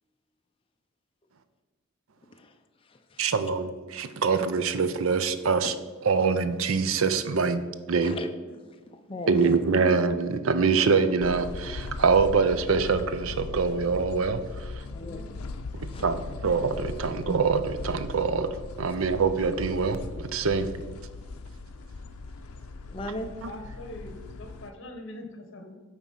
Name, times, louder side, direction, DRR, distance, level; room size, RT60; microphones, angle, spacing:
voice 1, 2.3-3.3 5.6-5.7 8.0-8.3 8.6-9.6 14.9-15.2 15.9-16.0 17.1-17.2 22.8-23.3, left 1 dB, 25° left, 5 dB, 0.5 m, -39 dB
voice 2, 3.2-5.7 6.0-7.6 7.9-8.2 9.3-14.8 15.8-20.7, right 5 dB, 70° right, 11 dB, 0.5 m, -25 dB
sound 1, 11.2-24.7, left 3 dB, 85° left, 0.5 m, -39 dB
voice 3, 14.9-15.4 23.4-25.7, left 1 dB, 55° left, 5 dB, 1.1 m, -43 dB
9.0 x 3.6 x 5.5 m, 1.3 s
head